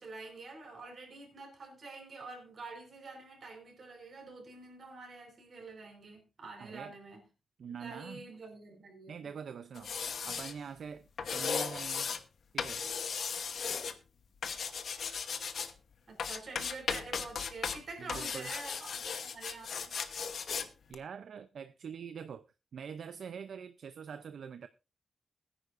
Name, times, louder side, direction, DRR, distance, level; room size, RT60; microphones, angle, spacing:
voice 1, 0.0-7.2 7.6-9.3 16.1-19.9, right 3 dB, 50° right, 4.6 m, -47 dB
voice 2, 6.6-6.9 7.6-8.3 9.1-10.0 10.2-12.1 12.5-12.8 18.0-18.5 20.9-22.4 22.7-24.7, right 7 dB, 70° right, 0.6 m, -44 dB
sound 1, 9.7-10.5 11.2-12.2 12.6-13.9 14.4-15.7 16.2-17.8 18.1-20.7 20.9-21.0, left 6 dB, 65° left, 1.0 m, -36 dB
21.0 x 9.9 x 2.6 m
wide cardioid pair, 155°, 0 cm